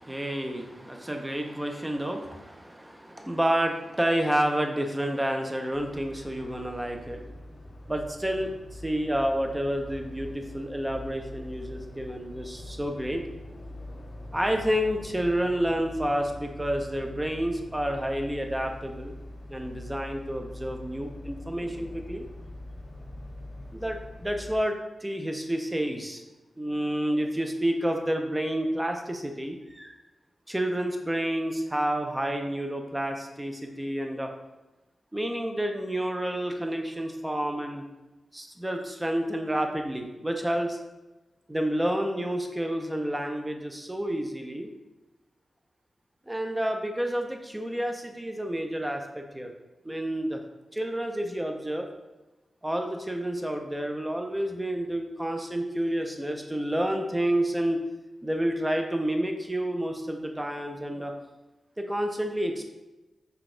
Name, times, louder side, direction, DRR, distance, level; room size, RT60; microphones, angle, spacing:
voice 1, 0.0-7.3 7.9-8.5 8.8-13.2 14.3-19.1 19.5-22.2 23.7-24.7 25.0-26.2 26.6-30.0 30.5-34.3 35.1-37.8 38.3-40.8 41.5-44.7 46.3-49.5 49.8-50.4 50.7-51.9 52.6-57.8 58.2-61.1 61.8-62.6, right 1 dB, 10° right, 4 dB, 0.4 m, -29 dB
sound 1, 5.7-24.6, left 1 dB, 50° left, 1.2 m, -43 dB
5.8 x 2.3 x 3.7 m, 1.1 s
wide cardioid pair, 170°, 0 cm